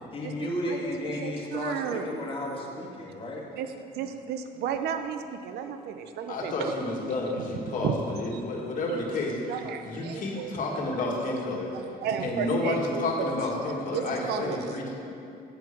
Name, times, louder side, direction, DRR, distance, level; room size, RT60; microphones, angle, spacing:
voice 1, 0.1-3.4, left 1 dB, 30° left, -3 dB, 1.7 m, -33 dB
voice 2, 1.2-2.1 3.6-3.7 3.9-6.7 7.8-7.9 8.9-9.0 9.5-10.5 12.0-13.3 13.9-14.6, right 8 dB, 75° right, 8 dB, 0.6 m, -33 dB
voice 3, 6.3-9.3 9.8-11.7 12.2-14.9, left 2 dB, 50° left, -2 dB, 1.8 m, -30 dB
8.0 x 4.5 x 7.2 m, 2.6 s
cardioid pair, 110°, 17 cm